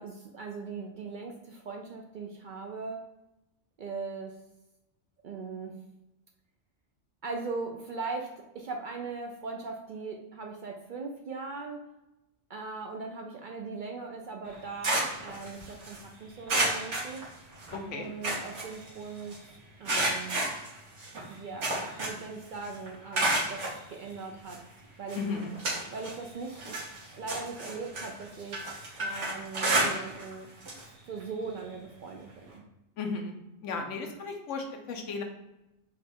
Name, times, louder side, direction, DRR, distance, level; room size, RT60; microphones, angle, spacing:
voice 1, 0.0-3.0 3.8-4.4 5.2-5.8 7.2-11.8 12.5-17.3 17.9-19.5 19.8-20.4 21.3-24.6 25.0-25.2 25.9-26.8 27.1-30.5 30.8-32.6, right 4 dB, 60° right, 2 dB, 0.5 m, -39 dB
sound 1, 14.4-16.0 16.5-17.8 18.0-19.4 19.8-22.3 22.6-23.8 24.5-24.6 25.1-26.2 26.5-30.3 30.6-30.8 31.2-31.3 32.5-32.6, right 2 dB, 75° right, 1.7 m, -31 dB
voice 2, 17.7-18.1 25.1-25.5 33.0-33.3 33.6-35.2, left 4 dB, 90° left, 3 dB, 1.1 m, -35 dB
4.9 x 2.4 x 4.2 m, 0.93 s
omnidirectional pair, 1.2 m